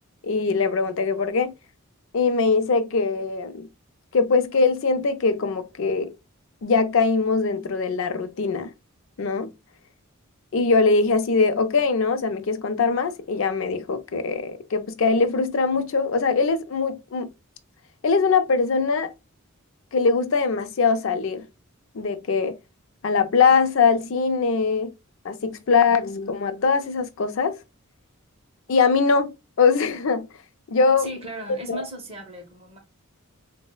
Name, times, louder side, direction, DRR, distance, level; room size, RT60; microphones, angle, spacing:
voice 1, 0.2-1.5 2.1-3.7 4.1-6.1 6.6-8.7 9.2-9.5 10.5-17.3 18.0-19.1 19.9-21.5 21.9-22.6 23.0-24.9 25.2-27.6 28.7-30.3 30.7-31.1 31.7-31.8, left 4 dB, 60° left, 0.4 m, -22 dB
voice 2, 31.0-32.8, right 1 dB, 25° right, 0.7 m, -36 dB
4.0 x 2.0 x 2.2 m
head